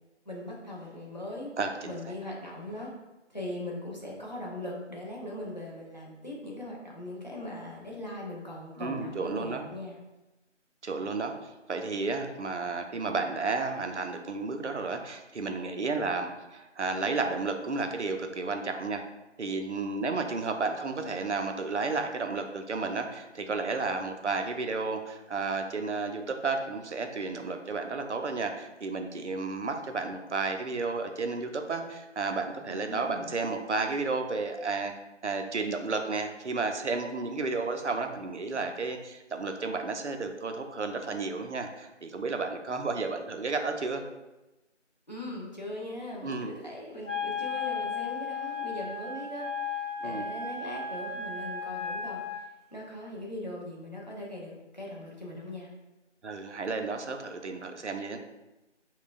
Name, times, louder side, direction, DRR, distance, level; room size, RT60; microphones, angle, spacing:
voice 1, 0.3-1.5 1.8-2.9 3.3-10.0 32.7-33.3 45.1-55.7, left 1 dB, 35° left, -4 dB, 0.7 m, -40 dB
voice 2, 1.6-1.9 8.8-9.7 10.8-11.3 11.7-19.0 19.4-34.9 35.2-44.0 46.2-46.5 50.0-50.3 56.2-58.2, right 3 dB, 70° right, 5 dB, 0.5 m, -32 dB
Wind instrument woodwind instrument, 47.0-52.4, left 5 dB, 85° left, 0.9 m, -35 dB
5.5 x 2.2 x 2.5 m, 1.0 s
figure-of-eight pair, 170°, 37 cm